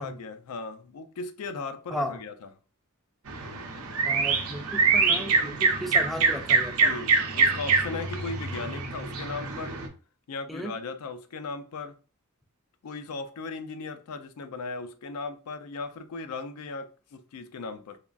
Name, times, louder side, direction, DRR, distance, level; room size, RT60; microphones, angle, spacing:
voice 1, 0.0-2.5 6.8-9.8 10.3-11.9 12.8-18.0, left 4 dB, 85° left, 0.4 m, -37 dB
sound 1, 3.3-9.9, right 4 dB, 75° right, 0.6 m, -25 dB
voice 2, 4.0-6.9 10.5-10.7, equal, ahead, 0.3 m, -35 dB
3.3 x 2.3 x 2.4 m
head